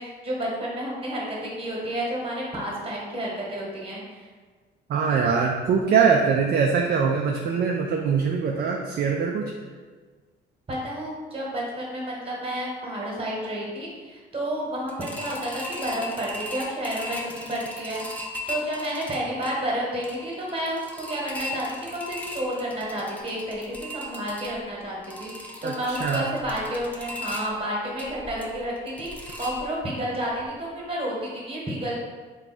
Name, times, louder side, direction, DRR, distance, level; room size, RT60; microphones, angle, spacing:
voice 1, 0.0-4.2 10.7-18.0 18.5-32.0, equal, 30° right, -3 dB, 1.1 m, -31 dB
voice 2, 4.9-9.5 25.6-26.3, right 6 dB, 50° right, 1 dB, 0.4 m, -23 dB
sound 1, 14.9-30.1 30.4-30.5 30.9-31.0, left 1 dB, 5° left, 0.5 m, -38 dB
3.3 x 2.3 x 4.1 m, 1.5 s
cardioid pair, 90°, 20 cm